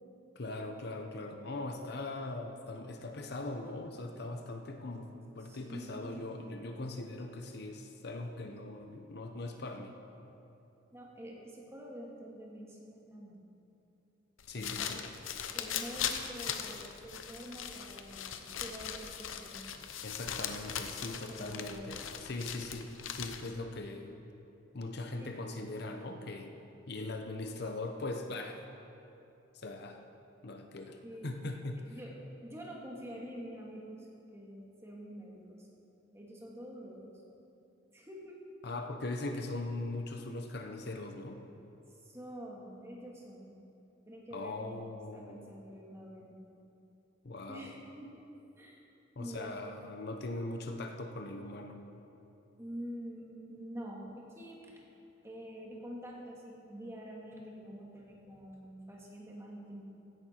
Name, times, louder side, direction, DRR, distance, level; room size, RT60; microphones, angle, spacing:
voice 1, 0.4-9.9 14.5-15.0 20.0-24.2 24.7-26.6 26.9-28.6 29.5-30.0 30.4-31.8 38.6-41.4 44.3-45.5 47.2-47.7 49.2-51.8, left 2 dB, 55° left, 5 dB, 0.8 m, -40 dB
voice 2, 5.4-6.3 10.9-13.4 14.5-15.1 15.5-19.6 21.1-21.9 25.1-25.4 31.0-31.4 31.8-32.2 32.4-35.7 36.1-37.2 37.9-38.4 38.8-38.9 41.9-43.6 44.1-44.8 45.1-46.4 47.5-48.2 48.6-48.8 49.2-49.6 52.6-54.7 55.2-59.8, equal, 15° right, -3 dB, 1.9 m, -47 dB
sound 1, 14.4-23.6, left 8 dB, 85° left, 0.8 m, -40 dB
15.5 x 11.0 x 4.4 m, 2.8 s
head